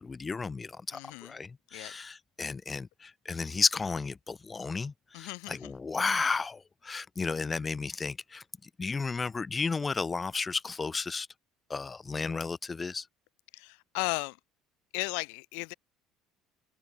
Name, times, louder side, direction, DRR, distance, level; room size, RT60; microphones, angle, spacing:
voice 1, 0.0-8.4 8.8-11.3 11.7-13.1, left 4 dB, 15° left, 3.9 m, -33 dB
voice 2, 0.9-1.3 1.7-1.9 5.1-5.7 13.5-14.4 14.9-15.7, left 40 dB or more, 85° left, 1.8 m, -35 dB
cardioid pair, 155°, 0 cm